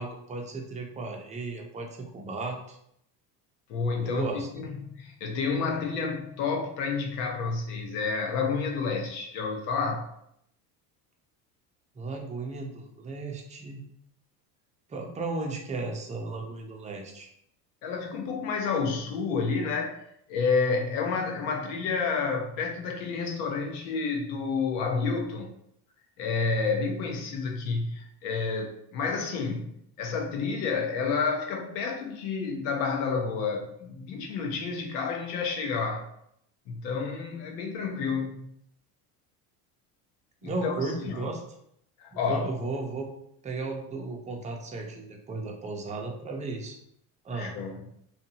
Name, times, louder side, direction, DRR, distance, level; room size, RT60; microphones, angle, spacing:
voice 1, 0.0-2.8 4.0-4.5 12.0-13.8 14.9-17.3 40.4-41.4 42.1-43.1 43.4-46.8 47.2-47.5, right 3 dB, 15° right, 1 dB, 0.4 m, -35 dB
voice 2, 3.7-10.1 17.8-20.0 20.3-25.5 26.2-29.7 30.0-36.1 36.7-38.5 40.4-40.7 41.0-41.2 42.0-42.5 47.3-47.8, left 4 dB, 75° left, 2 dB, 0.8 m, -30 dB
2.7 x 2.3 x 2.7 m, 0.73 s
supercardioid pair, 90°, 48 cm